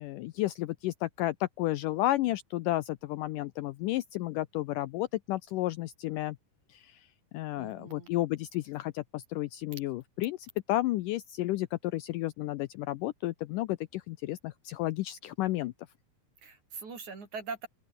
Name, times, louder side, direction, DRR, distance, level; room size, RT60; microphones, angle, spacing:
voice 1, 0.0-6.4 6.7-7.0 7.3-15.7, left 16 dB, 75° left, 2.0 m, -32 dB
voice 2, 7.6-8.1 16.4-17.7, right 4 dB, 50° right, 6.2 m, -41 dB
open air
omnidirectional pair, 4.3 m